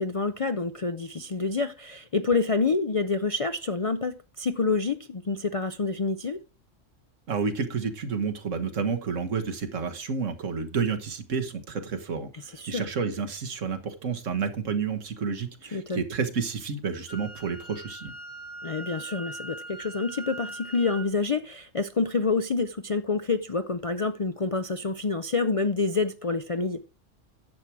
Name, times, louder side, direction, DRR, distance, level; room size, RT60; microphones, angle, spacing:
voice 1, 0.0-6.4 12.5-12.9 15.7-16.0 18.6-26.8, left 4 dB, 45° left, 0.4 m, -27 dB
voice 2, 7.3-12.3 12.7-18.1, right 5 dB, 75° right, 1.7 m, -30 dB
Wind instrument woodwind instrument, 17.1-21.1, right 2 dB, 65° left, 4.9 m, -41 dB
10.5 x 7.4 x 4.7 m
omnidirectional pair, 1.3 m